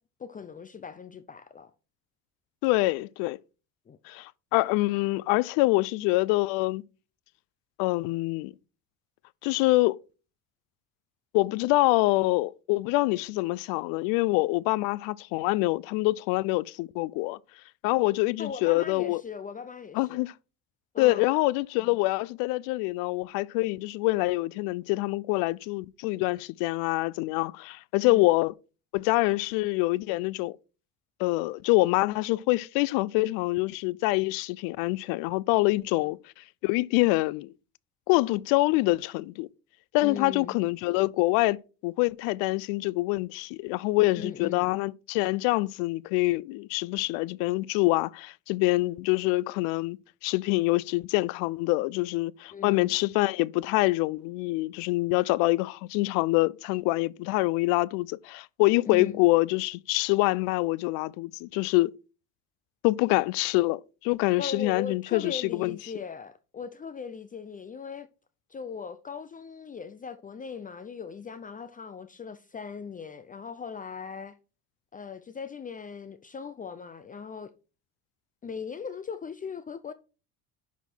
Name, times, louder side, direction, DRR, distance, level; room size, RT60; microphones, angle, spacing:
voice 1, 0.2-1.7 3.9-4.0 18.4-20.2 20.9-21.3 28.0-28.3 40.0-40.6 44.2-44.7 52.5-53.0 58.9-59.2 64.4-68.1 68.5-74.4 74.9-77.5 78.4-79.9, left 6 dB, 25° left, 0.6 m, -39 dB
voice 2, 2.6-3.4 4.1-6.8 7.8-8.5 9.4-10.0 11.3-17.4 17.8-19.2 19.9-20.3 21.0-28.5 28.9-30.6 31.2-37.5 38.1-39.5 39.9-41.6 41.8-50.0 50.2-61.9 62.8-65.8, left 21 dB, 90° left, 0.5 m, -25 dB
11.0 x 4.2 x 4.5 m
cardioid pair, 110°, 33 cm